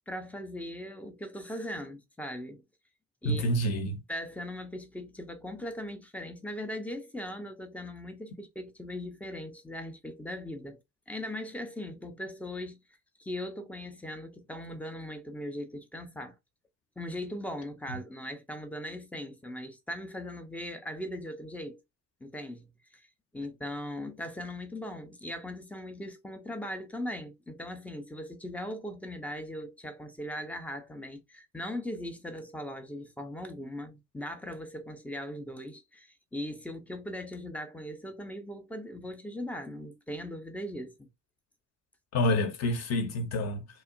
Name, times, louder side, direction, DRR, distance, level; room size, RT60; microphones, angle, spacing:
voice 1, 0.1-2.6 3.2-3.5 4.1-10.8 11.1-12.8 13.2-16.4 17.0-21.8 22.2-23.1 23.3-41.1, left 1 dB, 5° left, 0.4 m, -39 dB
voice 2, 3.2-4.0 17.9-18.0 42.1-43.7, left 1 dB, 35° left, 0.7 m, -28 dB
2.8 x 2.1 x 2.4 m
figure-of-eight pair, 50°, 46 cm